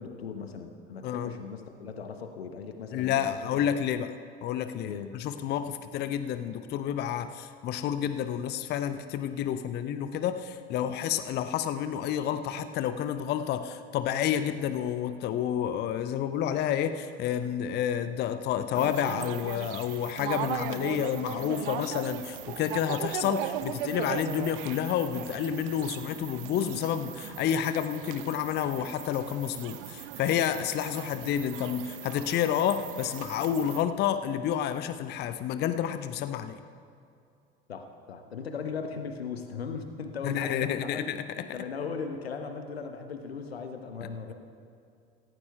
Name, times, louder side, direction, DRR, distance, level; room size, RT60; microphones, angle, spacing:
voice 1, 0.0-3.7 4.8-5.2 37.7-41.1 41.4-44.3, left 5 dB, 80° left, 7 dB, 0.8 m, -38 dB
voice 2, 2.9-4.1 4.4-36.6 40.2-41.6, left 9 dB, 35° left, 11 dB, 0.5 m, -30 dB
sound 1, 18.7-33.8, right 11 dB, 60° right, 0.6 m, -38 dB
17.5 x 15.5 x 2.3 m, 2.5 s
figure-of-eight pair, 65°, 31 cm